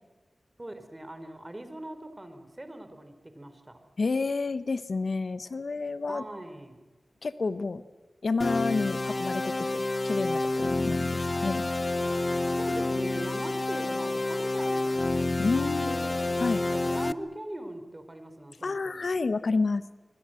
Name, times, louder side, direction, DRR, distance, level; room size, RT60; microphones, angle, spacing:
voice 1, 0.6-3.8 6.1-6.8 12.5-16.2 16.6-19.1, right 1 dB, 20° right, 8 dB, 3.9 m, -41 dB
voice 2, 4.0-6.2 7.2-7.8 8.2-11.6 15.4-16.0 16.4-16.6 18.6-19.8, left 4 dB, 70° left, 13 dB, 1.0 m, -29 dB
sound 1, 8.4-17.1, left 2 dB, 40° left, 0.8 m, -29 dB
25.0 x 25.0 x 7.8 m, 1.2 s
wide cardioid pair, 75°, 0 cm